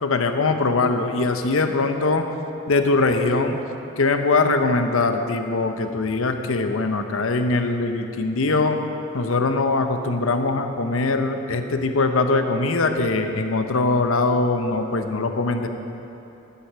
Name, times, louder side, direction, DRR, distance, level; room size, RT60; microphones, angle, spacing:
voice 1, 0.0-2.2 2.7-3.6 4.0-8.8 9.1-15.7, left 3 dB, 80° left, 7 dB, 0.8 m, -22 dB
13.5 x 8.4 x 6.1 m, 2.9 s
head